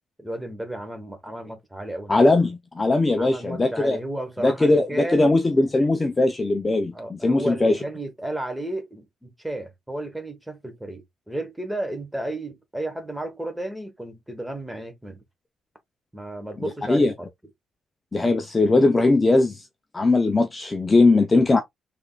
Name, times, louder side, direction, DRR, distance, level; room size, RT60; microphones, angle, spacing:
voice 1, 0.2-2.1 3.2-5.3 6.9-15.2 16.1-17.3, right 1 dB, 5° right, 1.0 m, -33 dB
voice 2, 2.1-4.0 4.4-7.8 16.9-17.1 18.1-19.6 19.9-21.6, left 2 dB, 20° left, 0.5 m, -19 dB
3.5 x 3.4 x 2.3 m
cardioid pair, 140°, 0 cm